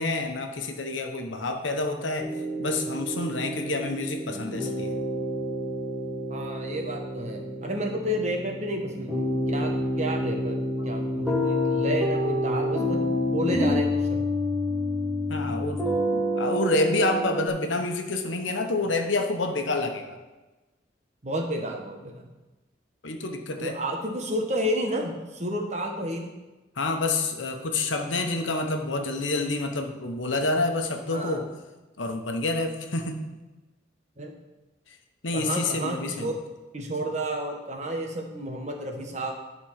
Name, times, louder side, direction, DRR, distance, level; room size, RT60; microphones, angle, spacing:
voice 1, 0.0-2.3 2.6-5.0 15.3-15.9 16.1-20.1 23.0-23.8 26.8-31.4 32.0-33.2 35.2-36.3, left 2 dB, 90° left, 4 dB, 1.1 m, -28 dB
sound 1, 2.2-17.5, left 1 dB, 5° right, 1.5 m, -28 dB
voice 2, 6.3-10.6 10.8-14.2 21.2-22.2 23.6-26.3 31.1-31.4 34.2-34.3 35.3-36.3 36.7-39.3, equal, 40° right, 2 dB, 1.2 m, -31 dB
12.0 x 4.2 x 5.8 m, 1.1 s
head